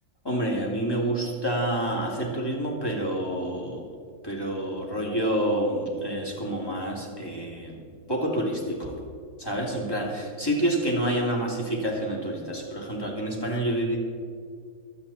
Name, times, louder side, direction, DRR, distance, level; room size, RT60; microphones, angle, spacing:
voice 1, 0.2-3.8 4.2-7.8 8.1-8.9 9.4-14.0, right 1 dB, 15° left, -3 dB, 2.9 m, -28 dB
24.0 x 8.6 x 4.3 m, 2.2 s
omnidirectional pair, 1.6 m